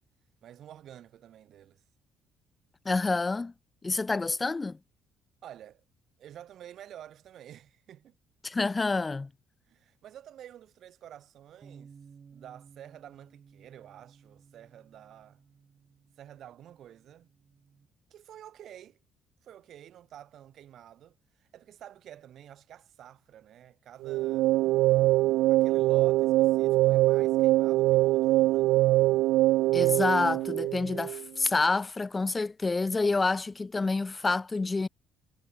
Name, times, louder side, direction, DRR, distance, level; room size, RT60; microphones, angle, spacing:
voice 1, 0.4-1.8 5.4-5.8 6.2-8.2 9.7-11.9 12.3-15.4 16.2-17.3 18.1-19.0 19.4-24.6 25.4-28.9, right 11 dB, 65° right, 6.1 m, -50 dB
voice 2, 2.8-3.5 3.8-4.8 8.4-9.3 29.7-34.9, left 3 dB, 25° left, 1.2 m, -28 dB
Bass guitar, 11.6-17.9, right 6 dB, 40° right, 6.4 m, -56 dB
sound 1, 24.0-31.2, right 17 dB, 80° right, 0.6 m, -23 dB
cardioid pair, 85°, 0 cm